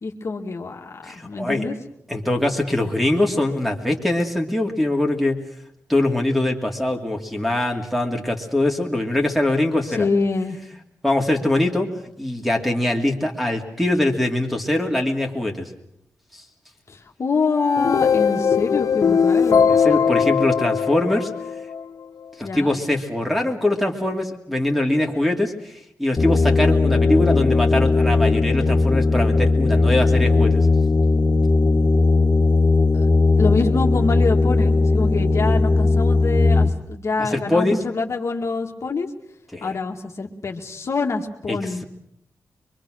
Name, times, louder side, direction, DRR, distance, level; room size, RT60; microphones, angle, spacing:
voice 1, 0.0-1.7 9.9-10.6 16.9-19.7 22.4-22.8 32.9-33.1 33.4-39.1 39.6-41.8, left 4 dB, 55° left, 2 dB, 2.1 m, -25 dB
voice 2, 1.0-1.6 2.1-5.3 5.9-10.1 11.0-11.9 12.2-15.7 19.7-21.3 22.4-25.7 26.0-30.7 37.2-37.8 39.5-39.8 41.5-41.6, left 1 dB, ahead, 3 dB, 2.8 m, -22 dB
sound 1, 17.5-21.8, left 6 dB, 70° left, 1.1 m, -19 dB
sound 2, 26.2-36.7, left 3 dB, 40° left, 1.7 m, -18 dB
24.0 x 23.5 x 6.4 m, 0.75 s
wide cardioid pair, 90°, 6 cm